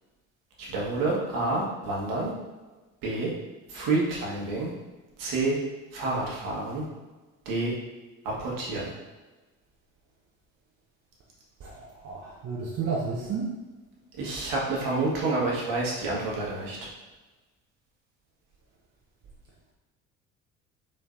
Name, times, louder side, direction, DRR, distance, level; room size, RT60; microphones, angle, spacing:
voice 1, 0.6-2.3 3.0-3.3 3.7-4.7 5.2-5.6 5.9-6.8 7.4-7.7 8.2-8.9 14.2-16.8, right 2 dB, 55° right, -4 dB, 1.4 m, -28 dB
voice 2, 11.6-13.5, right 4 dB, 40° right, -4 dB, 0.8 m, -32 dB
5.3 x 3.3 x 2.6 m, 1.2 s
hypercardioid pair, 55°, 40 cm